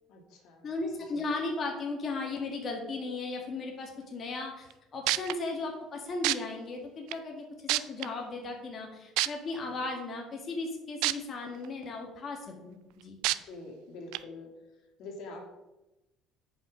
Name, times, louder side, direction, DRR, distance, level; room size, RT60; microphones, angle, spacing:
voice 1, 0.1-0.7 1.1-1.3 13.4-14.5 15.0-15.4, left 2 dB, 65° left, 3 dB, 2.0 m, -45 dB
voice 2, 0.6-13.2, left 3 dB, 35° left, 1 dB, 1.8 m, -36 dB
sound 1, 4.7-4.8 5.1-5.3 6.2-6.4 7.1-7.2 7.7-8.1 9.2-9.3 11.0-11.1 11.6-11.7 13.2-13.4 14.1-14.2, right 18 dB, 85° right, 0.4 m, -26 dB
10.0 x 5.8 x 5.0 m, 0.99 s
cardioid pair, 125°, 0 cm